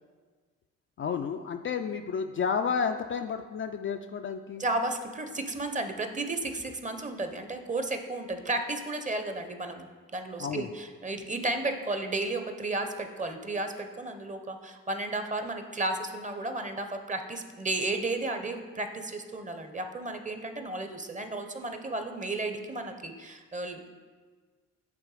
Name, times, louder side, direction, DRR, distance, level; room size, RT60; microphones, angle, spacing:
voice 1, 1.0-4.6 10.4-10.7, left 6 dB, 40° left, 6 dB, 0.4 m, -31 dB
voice 2, 4.6-23.9, right 2 dB, 20° right, 6 dB, 0.8 m, -33 dB
8.4 x 3.3 x 4.8 m, 1.5 s
supercardioid pair, 60°, 33 cm